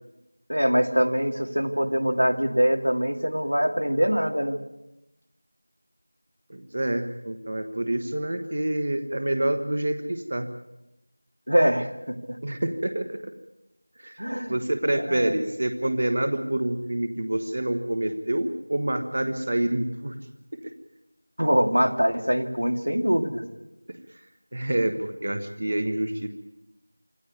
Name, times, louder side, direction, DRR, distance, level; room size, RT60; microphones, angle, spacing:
voice 1, 0.5-4.6 11.5-12.4 14.2-14.6 15.1-15.3 21.4-23.5, equal, 80° right, 8 dB, 2.4 m, -23 dB
voice 2, 6.5-10.5 12.4-13.3 14.0-14.1 14.5-20.2 20.6-20.7 23.9-24.0 24.5-26.3, right 1 dB, 35° right, 9 dB, 1.3 m, -27 dB
25.5 x 13.5 x 9.6 m, 0.93 s
figure-of-eight pair, 175°, 0 cm